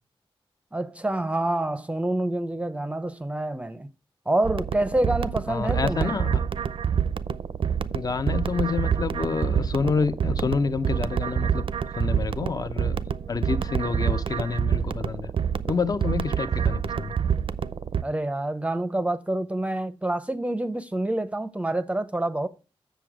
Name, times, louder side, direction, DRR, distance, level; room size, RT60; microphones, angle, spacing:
voice 1, 0.7-3.9 4.3-6.1 18.0-22.5, right 1 dB, 15° right, 0.6 m, -27 dB
sound 1, 4.4-18.0, right 7 dB, 70° right, 0.5 m, -27 dB
voice 2, 5.5-6.4 7.9-11.7 12.0-13.0 13.3-15.3 15.7-17.1, left 4 dB, 40° left, 0.6 m, -28 dB
7.7 x 6.9 x 4.8 m
wide cardioid pair, 120°, 10 cm